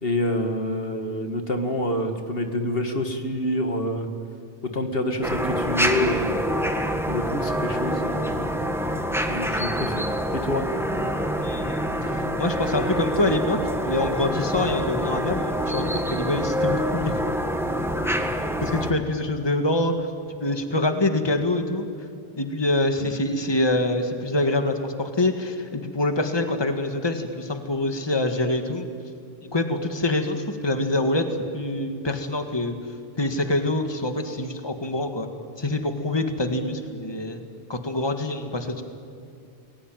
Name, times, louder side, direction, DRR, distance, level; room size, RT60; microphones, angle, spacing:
voice 1, 0.0-4.1 4.7-6.4 7.1-8.5 9.3-10.7, left 1 dB, 65° left, 5 dB, 2.2 m, -27 dB
sound 1, 5.2-18.9, equal, ahead, 1.8 m, -26 dB
voice 2, 11.4-13.6 13.8-17.2 18.6-20.1 20.4-21.9 22.4-28.9 29.4-31.3 31.5-32.7 33.2-35.3 35.6-37.4 37.7-38.8, left 2 dB, 25° left, 6 dB, 1.9 m, -25 dB
29.5 x 21.0 x 9.1 m, 2.6 s
omnidirectional pair, 1.0 m